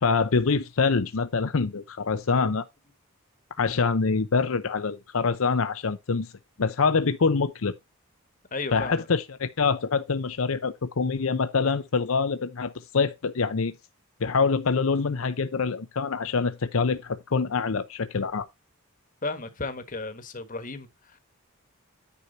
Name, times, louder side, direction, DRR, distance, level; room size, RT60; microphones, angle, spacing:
voice 1, 0.0-2.7 3.6-6.3 6.6-7.7 8.7-13.7 14.2-18.5, left 4 dB, 75° left, 0.7 m, -25 dB
voice 2, 8.5-9.1 19.2-21.2, left 3 dB, 40° left, 1.3 m, -34 dB
9.9 x 4.7 x 4.0 m
head